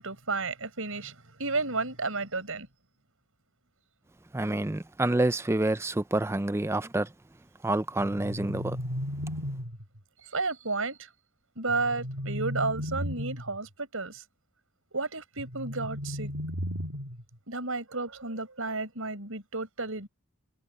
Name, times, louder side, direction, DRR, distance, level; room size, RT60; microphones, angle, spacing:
voice 1, 0.0-2.7 10.2-11.1 11.6-14.2 14.9-16.3 17.5-20.1, right 3 dB, 65° right, 5.5 m, -32 dB
voice 2, 4.3-7.1 7.6-8.8, right 2 dB, 10° right, 0.4 m, -28 dB
sound 1, 8.0-10.0 11.7-13.6 15.4-17.3, equal, 85° right, 2.2 m, -35 dB
head